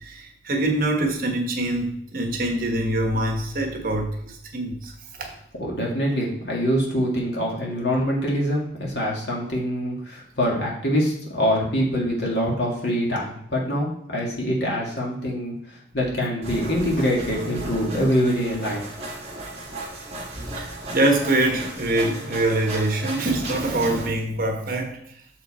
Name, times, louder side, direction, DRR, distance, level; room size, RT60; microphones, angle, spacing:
voice 1, 0.0-4.9 5.2-5.3 20.6-25.0, right 1 dB, 50° right, 3 dB, 1.2 m, -24 dB
voice 2, 5.6-18.8, equal, 70° left, -3 dB, 2.0 m, -24 dB
sound 1, 16.4-24.1, right 1 dB, 35° right, 1.5 m, -35 dB
6.8 x 4.8 x 4.2 m, 0.70 s
head